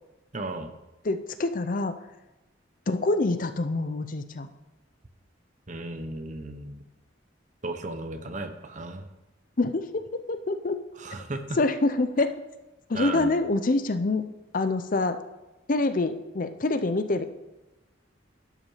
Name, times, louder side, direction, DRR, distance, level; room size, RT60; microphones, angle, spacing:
voice 1, 0.3-0.7 5.7-6.8 7.6-9.1 11.0-11.6 12.9-13.3, right 2 dB, 40° right, 8 dB, 0.9 m, -35 dB
voice 2, 1.0-1.9 2.9-4.5 9.6-10.8 11.6-12.4 12.9-14.2 14.5-15.2 15.7-17.4, left 2 dB, 45° left, 10 dB, 0.6 m, -26 dB
11.5 x 5.9 x 5.7 m, 1.1 s
head